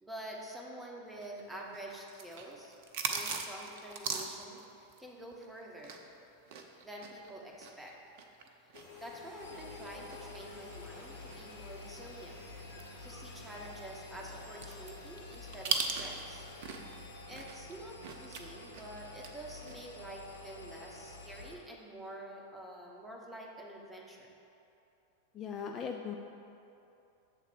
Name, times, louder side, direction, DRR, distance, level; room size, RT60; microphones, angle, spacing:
voice 1, 0.0-2.8 3.1-6.0 6.8-7.9 9.0-12.4 13.0-16.5 17.3-24.4, right 1 dB, 5° right, -2 dB, 1.1 m, -47 dB
sound 1, 1.2-6.1 6.4-12.0 12.4-12.5 12.8-17.0 17.3-19.3 19.6-19.9, right 5 dB, 50° right, 0.6 m, -40 dB
sound 2, 8.7-17.2, left 4 dB, 50° left, 1.4 m, -54 dB
Engine, 9.4-21.5, left 2 dB, 75° left, 0.6 m, -50 dB
voice 2, 25.3-26.2, left 7 dB, 30° left, 3 dB, 0.3 m, -38 dB
7.4 x 3.7 x 6.3 m, 2.8 s
figure-of-eight pair, 90°, 0 cm